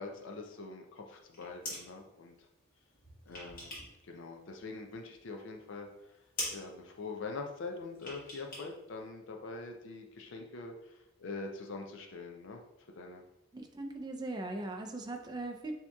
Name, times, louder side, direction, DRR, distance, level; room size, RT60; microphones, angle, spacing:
voice 1, 0.0-2.3 3.3-3.8 4.0-5.9 6.5-12.6 12.9-13.2, left 3 dB, 60° left, 3 dB, 0.5 m, -44 dB
sound 1, 1.2-1.9 2.9-4.0 4.3-5.2 5.5-5.6 6.0-6.1 6.3-6.6 8.0-8.7 8.9-9.0, left 1 dB, 45° left, 1.4 m, -42 dB
voice 2, 13.5-15.7, right 2 dB, 20° right, 3 dB, 0.4 m, -39 dB
6.9 x 2.8 x 2.3 m, 0.95 s
head